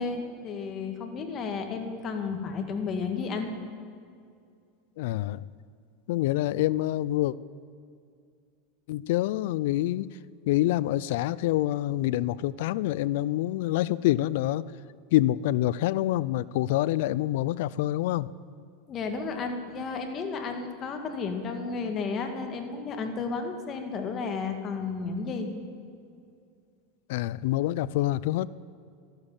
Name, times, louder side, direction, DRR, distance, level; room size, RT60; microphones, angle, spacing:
voice 1, 0.0-3.5 18.9-25.5, left 4 dB, 35° left, 5 dB, 1.8 m, -32 dB
voice 2, 5.0-5.4 6.1-7.4 8.9-10.1 10.5-14.6 15.1-18.3 27.1-28.5, left 15 dB, 70° left, 20 dB, 0.4 m, -26 dB
13.0 x 11.5 x 7.3 m, 2.3 s
supercardioid pair, 130°, 0 cm